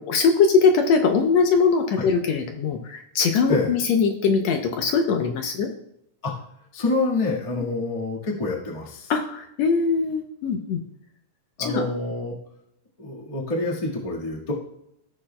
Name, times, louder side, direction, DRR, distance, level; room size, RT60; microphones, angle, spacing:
voice 1, 0.0-5.7 9.1-10.8 11.6-11.8, left 5 dB, 75° left, 4 dB, 1.8 m, -21 dB
voice 2, 6.7-9.1 11.6-12.3 13.0-14.5, left 2 dB, 20° left, -2 dB, 0.9 m, -27 dB
15.5 x 6.4 x 2.2 m, 0.76 s
omnidirectional pair, 3.4 m